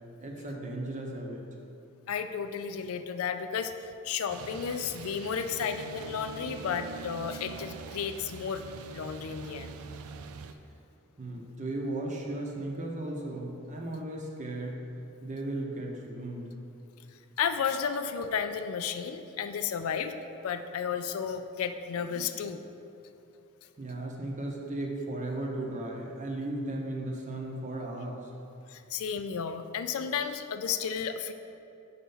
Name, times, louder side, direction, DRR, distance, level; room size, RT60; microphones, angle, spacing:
voice 1, 0.2-1.4 11.2-14.8 15.2-16.5 23.8-28.3, right 1 dB, 35° right, 0 dB, 0.8 m, -36 dB
voice 2, 2.1-3.7 4.0-8.6 8.9-9.7 17.4-20.1 20.4-22.6 28.7-31.3, left 7 dB, 70° left, 8 dB, 0.4 m, -33 dB
sound 1, 4.3-10.5, right 4 dB, 75° right, 0.4 m, -43 dB
5.7 x 4.3 x 5.5 m, 2.8 s
head